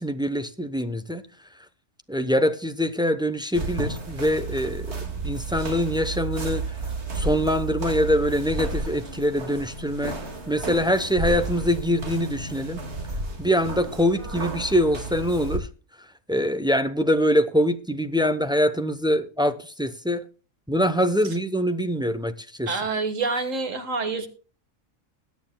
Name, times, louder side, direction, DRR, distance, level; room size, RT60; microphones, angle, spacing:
voice 1, 0.0-1.5 2.1-6.8 7.1-10.2 10.5-12.8 13.4-15.7 16.0-20.2 20.7-22.7, equal, 5° right, 0.6 m, -24 dB
sound 1, 3.5-15.6, right 3 dB, 55° right, 2.3 m, -32 dB
voice 2, 22.7-24.3, right 4 dB, 75° right, 2.1 m, -27 dB
21.0 x 9.3 x 2.2 m
omnidirectional pair, 1.4 m